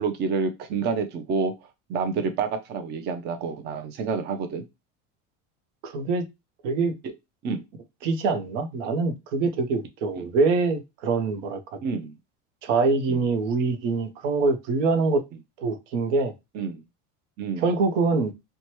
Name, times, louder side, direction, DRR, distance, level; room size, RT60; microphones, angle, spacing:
voice 1, 0.0-1.5 1.9-4.6 7.4-7.6 10.2-10.3 11.8-12.1 13.1-13.2 16.5-16.8 17.4-17.6, right 5 dB, 30° right, 0.4 m, -28 dB
voice 2, 5.8-6.2 6.6-6.9 8.0-11.6 12.6-15.2 15.6-16.3 17.6-18.3, right 4 dB, 85° right, 0.7 m, -24 dB
2.8 x 2.2 x 3.0 m
supercardioid pair, 130°, 36 cm